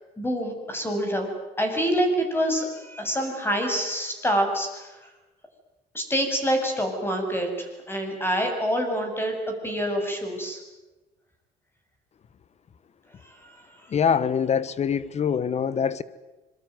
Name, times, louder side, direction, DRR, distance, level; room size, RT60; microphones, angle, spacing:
voice 1, 0.2-1.3 1.6-4.9 5.9-9.3 9.6-10.6, equal, 15° left, 7.7 m, -26 dB
voice 2, 13.9-16.0, left 7 dB, 40° left, 1.3 m, -24 dB
26.0 x 23.0 x 9.5 m
cardioid pair, 110°, 17 cm